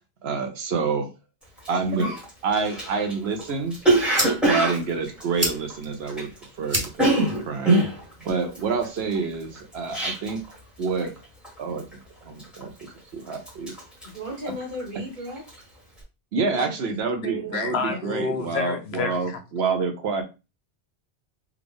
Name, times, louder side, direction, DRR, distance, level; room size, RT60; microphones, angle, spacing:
voice 1, 0.2-1.1 1.7-2.2 2.4-3.8 4.4-6.3 6.6-7.8 8.2-10.4 10.8-11.2 11.6-11.8 12.2-12.7 13.1-13.7 16.3-20.2, right 4 dB, 70° right, 0.9 m, -27 dB
Cough, 1.6-1.7 2.0-6.4 6.7-10.5 10.8-11.2 11.4-11.9 12.4-13.0 13.3-15.0 15.3-15.6, right 2 dB, ahead, 1.3 m, -24 dB
sound 1, 3.5-9.5, right 1 dB, 15° right, 0.7 m, -34 dB
voice 2, 14.0-15.5 16.5-18.0, right 1 dB, 55° right, 1.4 m, -36 dB
voice 3, 17.5-19.4, left 5 dB, 75° left, 0.9 m, -29 dB
3.5 x 2.4 x 3.4 m
omnidirectional pair, 1.1 m